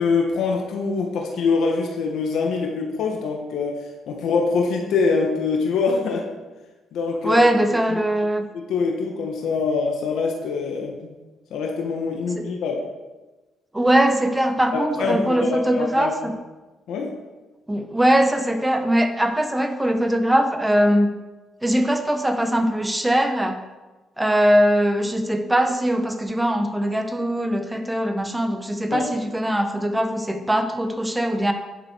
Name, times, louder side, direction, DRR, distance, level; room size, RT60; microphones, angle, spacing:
voice 1, 0.0-3.8 4.1-6.3 6.9-7.5 7.9-8.0 8.5-11.2 11.5-12.8 14.7-16.1 16.9-17.1 28.9-29.1, left 4 dB, 80° left, 1 dB, 1.6 m, -24 dB
voice 2, 7.2-8.5 12.3-12.4 13.7-16.3 17.7-21.1 21.6-23.6 24.2-31.5, right 1 dB, 10° right, 6 dB, 1.2 m, -21 dB
11.0 x 7.7 x 4.7 m, 1.2 s
cardioid pair, 90°, 0 cm